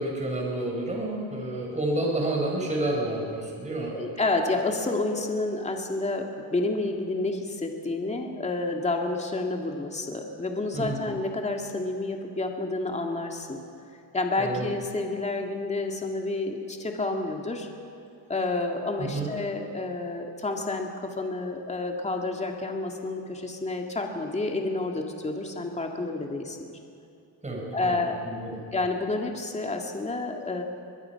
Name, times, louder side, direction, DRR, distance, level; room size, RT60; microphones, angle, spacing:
voice 1, 0.0-3.9 10.7-11.0 14.4-14.6 19.0-19.3 27.4-28.0 28.2-28.5, right 1 dB, 20° right, -1 dB, 5.0 m, -29 dB
voice 2, 3.8-13.6 14.1-17.7 18.3-26.8 27.7-28.2 28.7-30.6, left 2 dB, 15° left, 2 dB, 2.2 m, -29 dB
22.5 x 21.5 x 5.9 m, 2.6 s
cardioid pair, 125°, 39 cm